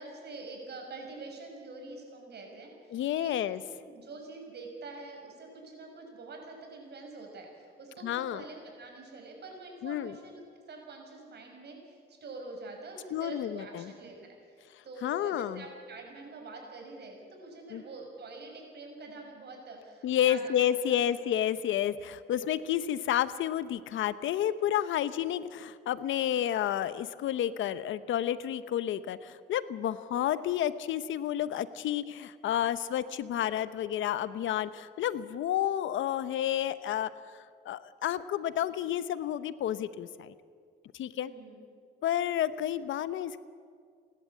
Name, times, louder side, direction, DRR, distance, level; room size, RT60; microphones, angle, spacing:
voice 1, 0.0-3.4 3.8-14.6 14.8-20.6 20.9-21.1 26.2-26.5 41.1-41.7, right 3 dB, 55° right, 2 dB, 6.3 m, -46 dB
voice 2, 2.9-3.6 8.0-8.4 9.8-10.2 13.1-13.9 15.0-15.6 17.7-17.8 20.0-40.3 40.9-41.3 42.0-43.4, left 11 dB, 75° left, 15 dB, 0.8 m, -30 dB
30.0 x 11.5 x 8.5 m, 2.1 s
cardioid pair, 90°, 20 cm